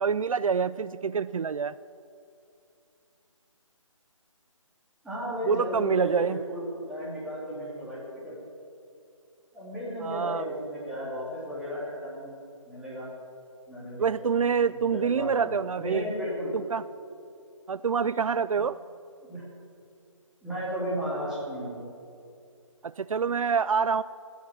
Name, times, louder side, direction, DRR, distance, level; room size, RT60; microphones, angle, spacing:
voice 1, 0.0-1.8 5.5-6.4 10.0-10.5 14.0-16.1 16.5-16.8 17.7-18.8 22.8-24.0, right 6 dB, 80° right, 17 dB, 0.4 m, -26 dB
voice 2, 5.0-8.3 9.5-12.3 12.6-13.1 13.7-14.3 15.1-16.5 18.5-18.6 19.2-19.4 20.4-21.9, equal, 5° right, -9 dB, 3.0 m, -34 dB
17.5 x 7.1 x 7.3 m, 2.5 s
figure-of-eight pair, 155°, 17 cm